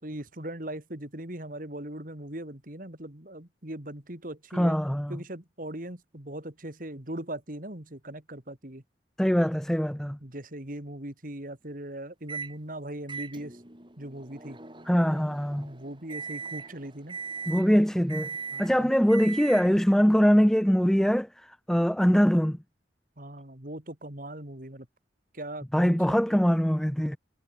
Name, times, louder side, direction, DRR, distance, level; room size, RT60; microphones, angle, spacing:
voice 1, 0.0-4.8 5.1-8.8 10.2-13.6 14.0-14.6 15.6-17.2 18.5-18.9 23.2-24.9 25.3-26.4, right 1 dB, 50° right, 2.9 m, -40 dB
voice 2, 4.5-5.2 9.2-10.2 14.9-15.7 17.5-18.3 18.6-21.3 21.7-22.6 25.7-27.2, equal, 5° left, 0.6 m, -22 dB
Microwave oven, 12.3-12.6 13.1-19.9, right 5 dB, 25° right, 4.3 m, -40 dB
head